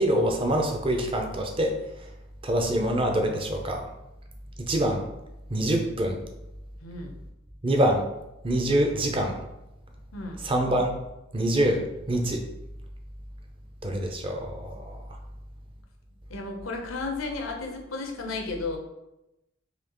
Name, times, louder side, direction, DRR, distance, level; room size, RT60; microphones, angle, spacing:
voice 1, 0.0-1.7 2.4-3.8 4.6-5.0 5.5-6.2 7.6-8.0 8.4-9.4 10.4-10.9 11.3-12.4 13.8-15.0, right 1 dB, 25° right, 3 dB, 0.5 m, -25 dB
voice 2, 6.8-7.2 10.1-10.4 16.3-18.8, left 3 dB, 85° left, 2 dB, 0.7 m, -33 dB
4.2 x 2.8 x 2.9 m, 0.91 s
head